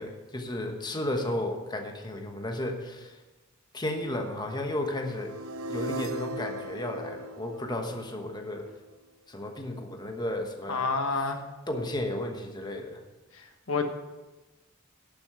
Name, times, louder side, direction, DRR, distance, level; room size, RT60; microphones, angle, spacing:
voice 1, 0.0-3.2 3.7-5.3 5.7-8.7 9.3-10.9 11.7-13.0, left 1 dB, 20° left, 3 dB, 1.1 m, -33 dB
sound 1, 4.9-8.9, right 1 dB, 80° right, 0.8 m, -38 dB
voice 2, 10.7-11.4 13.7-13.8, left 4 dB, 75° left, 6 dB, 1.3 m, -27 dB
11.0 x 7.0 x 6.7 m, 1.1 s
head